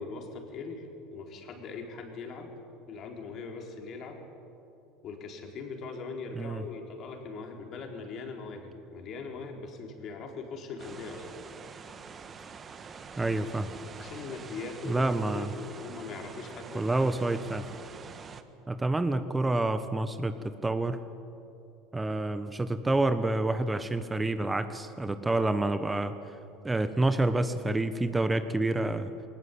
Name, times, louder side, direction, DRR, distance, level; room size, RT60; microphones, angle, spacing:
voice 1, 0.0-2.5 2.9-4.2 5.0-11.3 14.0-17.1, left 4 dB, 50° left, 2 dB, 4.3 m, -41 dB
sound 1, 10.8-18.4, right 5 dB, 35° right, 1.7 m, -46 dB
voice 2, 13.2-13.7 14.8-15.5 16.7-17.7 18.7-20.3 20.6-21.0 21.9-26.1 26.6-29.1, right 2 dB, 15° right, 10 dB, 1.3 m, -28 dB
22.0 x 19.5 x 8.7 m, 2.7 s
hypercardioid pair, 75°, 0 cm